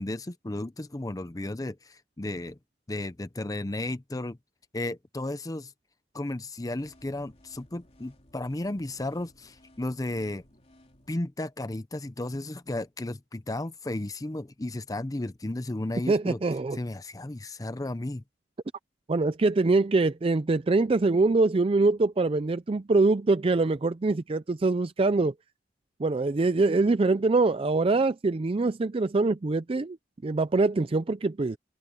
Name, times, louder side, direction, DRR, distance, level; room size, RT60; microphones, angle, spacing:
voice 1, 0.0-2.6 2.9-4.4 4.7-5.7 6.1-10.4 11.1-16.4 16.7-18.2, left 1 dB, 20° left, 0.6 m, -34 dB
sound 1, 6.8-11.2, left 1 dB, 35° left, 3.1 m, -59 dB
voice 2, 16.1-16.8 19.1-25.3 26.0-30.0 30.2-31.6, right 3 dB, 30° right, 0.4 m, -24 dB
head